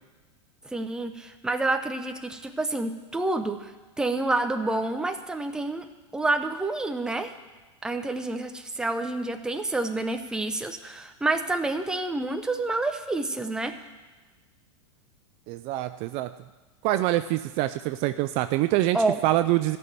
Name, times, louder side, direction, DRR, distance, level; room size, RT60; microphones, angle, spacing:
voice 1, 0.7-3.7 4.0-5.9 6.1-7.3 7.8-13.7 18.9-19.2, right 2 dB, 5° right, 6 dB, 0.8 m, -28 dB
voice 2, 15.5-16.3 16.8-19.0 19.2-19.8, right 15 dB, 40° right, 11 dB, 0.4 m, -25 dB
14.0 x 6.1 x 9.5 m, 1.2 s
supercardioid pair, 140°, 16 cm